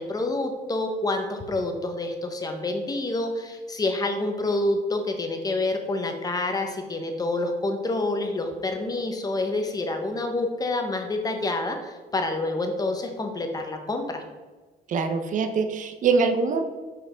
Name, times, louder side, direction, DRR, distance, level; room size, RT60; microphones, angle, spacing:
voice 1, 0.0-14.2, left 2 dB, 20° left, 5 dB, 1.0 m, -28 dB
voice 2, 14.9-16.6, right 4 dB, 50° right, 8 dB, 0.7 m, -23 dB
5.7 x 4.7 x 5.0 m, 1.3 s
cardioid pair, 110°, 17 cm